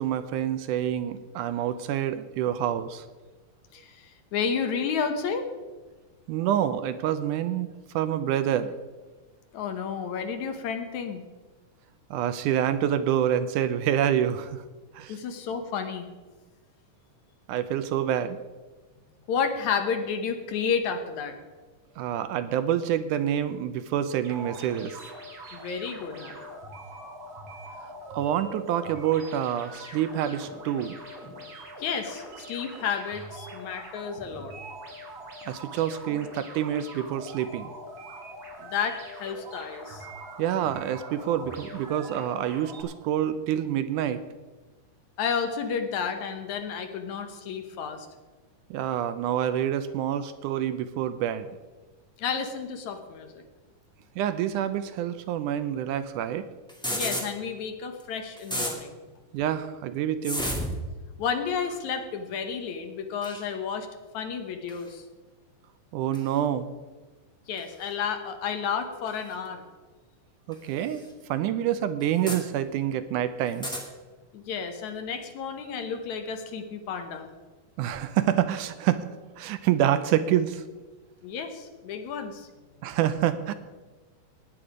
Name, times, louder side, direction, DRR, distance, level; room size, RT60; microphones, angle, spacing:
voice 1, 0.0-3.0 6.3-7.7 7.9-8.7 12.1-14.6 14.9-15.2 17.5-18.4 22.0-25.0 27.8-31.0 35.5-37.7 40.4-44.2 48.7-51.6 54.2-56.5 59.3-60.5 65.9-66.7 70.5-73.8 77.8-79.1 79.4-80.6 82.8-83.5, right 10 dB, 80° right, 11 dB, 2.1 m, -27 dB
voice 2, 3.7-5.5 9.5-11.2 15.1-16.1 19.3-21.4 25.5-26.5 31.8-34.5 38.6-40.1 45.2-48.1 52.2-53.4 56.9-59.0 61.2-63.9 64.1-65.0 67.5-69.6 74.3-77.3 81.2-82.5, left 6 dB, 70° left, 6 dB, 2.3 m, -31 dB
sound 1, 24.2-42.8, right 1 dB, 50° right, 3.7 m, -43 dB
sound 2, 56.7-57.2 58.0-58.1 58.4-58.7 60.2-60.8 61.6-61.8 63.2-63.4 64.7-64.9 66.1-66.3 67.6-67.7 69.1-69.2 70.5-70.6 71.0-71.1 72.0-72.4 73.5-73.8, equal, ahead, 1.4 m, -31 dB
16.5 x 9.9 x 5.0 m, 1.3 s
omnidirectional pair, 3.8 m